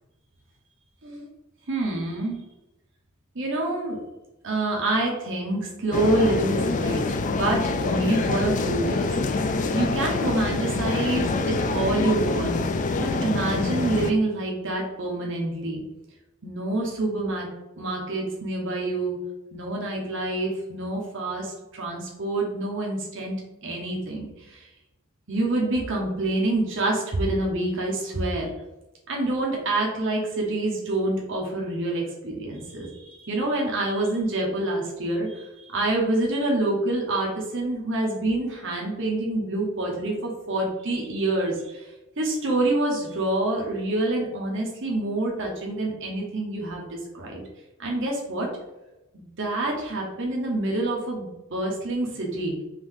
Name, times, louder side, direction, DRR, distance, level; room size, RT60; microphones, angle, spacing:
voice 1, 1.7-2.4 3.3-4.0 4.4-9.1 9.7-12.6 13.0-15.8 16.4-17.5 17.8-19.2 19.5-24.7 25.3-28.5 29.1-47.4 47.8-48.5 49.1-52.6, right 2 dB, 60° right, -1 dB, 1.0 m, -27 dB
sound 1, 5.9-14.1, left 3 dB, 35° left, 0.3 m, -26 dB
5.3 x 2.7 x 3.6 m, 0.98 s
head